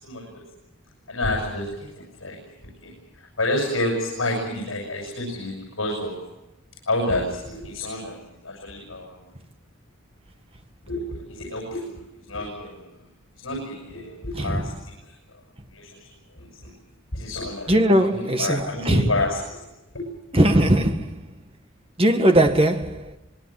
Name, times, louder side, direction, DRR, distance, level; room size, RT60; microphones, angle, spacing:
voice 1, 0.0-0.4 1.1-2.4 2.8-2.9 3.4-6.2 6.9-8.2 8.4-9.2 10.8-11.8 12.3-12.9 13.4-14.7 15.0-15.1 15.7-15.9 16.4-16.7 17.1-19.6 19.9-20.1, left 1 dB, 70° left, 7.3 m, -29 dB
voice 2, 17.7-19.1 20.3-21.1 22.0-23.0, right 1 dB, 25° right, 1.7 m, -19 dB
25.0 x 21.5 x 7.8 m
head